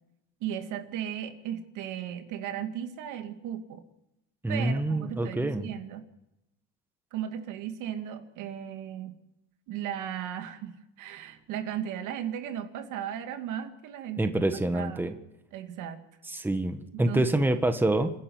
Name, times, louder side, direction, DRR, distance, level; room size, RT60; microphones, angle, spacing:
voice 1, 0.4-3.8 4.5-6.0 7.1-9.2 9.7-10.7 11.0-14.3 14.7-15.2 15.5-16.0 16.9-17.4, right 10 dB, 70° right, 7 dB, 2.4 m, -36 dB
voice 2, 4.4-5.7 14.2-15.1 16.2-18.1, right 1 dB, 5° right, 8 dB, 1.5 m, -26 dB
27.0 x 11.0 x 9.5 m, 0.86 s
supercardioid pair, 105°, 32 cm